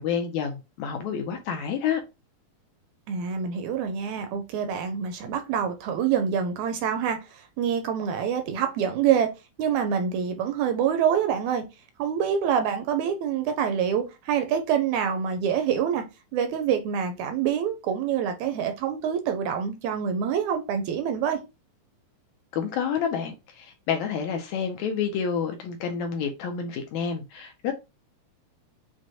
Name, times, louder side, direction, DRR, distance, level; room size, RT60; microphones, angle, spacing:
voice 1, 0.0-2.0 22.5-27.7, left 7 dB, 80° left, 1.7 m, -29 dB
voice 2, 3.1-9.3 9.6-11.6 12.0-16.0 16.3-21.4, right 8 dB, 80° right, 1.8 m, -26 dB
6.1 x 2.1 x 2.6 m
omnidirectional pair, 3.6 m